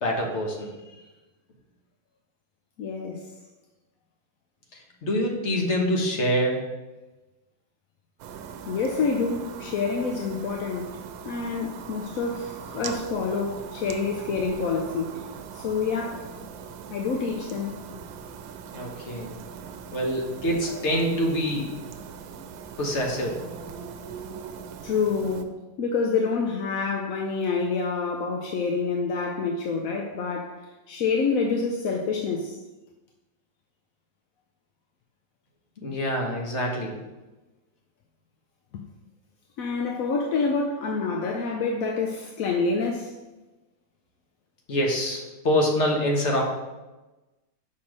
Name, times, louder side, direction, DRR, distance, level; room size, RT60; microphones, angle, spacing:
voice 1, 0.0-1.0 4.7-6.6 18.7-19.3 19.9-21.7 22.8-23.4 35.8-37.0 44.7-46.4, equal, 40° left, 1.4 m, -26 dB
voice 2, 2.8-3.3 8.7-10.9 11.2-15.1 15.5-16.3 16.9-17.7 24.8-30.6 30.9-32.6 38.7-38.8 39.6-43.1, left 4 dB, 65° left, 0.9 m, -27 dB
sound 1, 8.2-25.4, right 7 dB, 85° right, 1.3 m, -40 dB
5.7 x 4.4 x 6.2 m
omnidirectional pair, 2.0 m